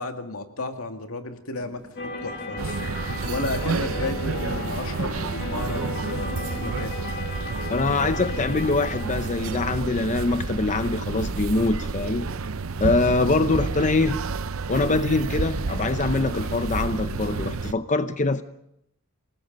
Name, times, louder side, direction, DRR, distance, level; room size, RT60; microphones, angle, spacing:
voice 1, 0.0-1.8 2.2-6.9, left 2 dB, 85° left, 2.3 m, -33 dB
sound 1, 1.5-17.6, left 1 dB, 5° right, 6.4 m, -48 dB
sound 2, 2.0-10.6, left 2 dB, 50° left, 3.0 m, -36 dB
sound 3, 2.6-17.7, right 4 dB, 70° right, 0.7 m, -30 dB
voice 2, 7.7-12.3 12.8-14.2 14.7-18.4, left 3 dB, 35° left, 0.7 m, -24 dB
28.5 x 19.5 x 5.4 m
head